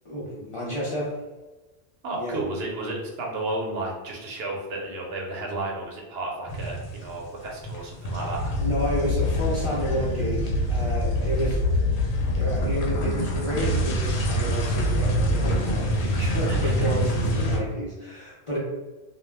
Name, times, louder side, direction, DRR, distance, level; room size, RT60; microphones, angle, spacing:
voice 1, 0.0-1.2 2.2-2.4 8.6-11.6 11.9-12.0 12.3-18.6, equal, 40° left, -6 dB, 0.5 m, -30 dB
voice 2, 2.0-8.6 16.5-16.9, right 2 dB, 75° right, -1 dB, 0.9 m, -32 dB
sound 1, 6.5-7.3 7.5-17.6, left 1 dB, 90° left, 0.8 m, -25 dB
2.3 x 2.1 x 3.2 m, 1.2 s
omnidirectional pair, 1.1 m